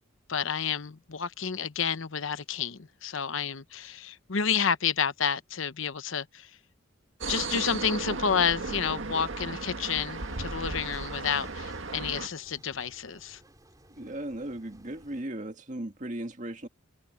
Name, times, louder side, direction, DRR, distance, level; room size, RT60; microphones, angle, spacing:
voice 1, 0.3-6.5 7.3-13.4, left 7 dB, 75° left, 0.9 m, -30 dB
sound 1, 7.2-12.3, right 3 dB, 70° right, 1.7 m, -35 dB
sound 2, 10.2-15.2, right 1 dB, 20° right, 5.4 m, -56 dB
voice 2, 14.0-16.7, right 1 dB, 40° right, 1.9 m, -37 dB
head